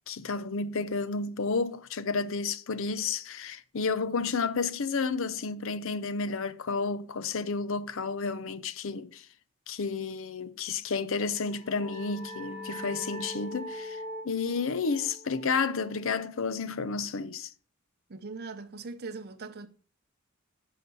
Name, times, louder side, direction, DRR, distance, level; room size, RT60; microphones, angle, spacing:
voice 1, 0.1-9.3 9.7-17.5, left 4 dB, 65° left, 0.6 m, -31 dB
sound 1, 11.2-16.5, left 1 dB, 25° left, 1.8 m, -42 dB
voice 2, 18.1-19.7, right 4 dB, 50° right, 0.7 m, -40 dB
9.9 x 5.6 x 5.5 m
head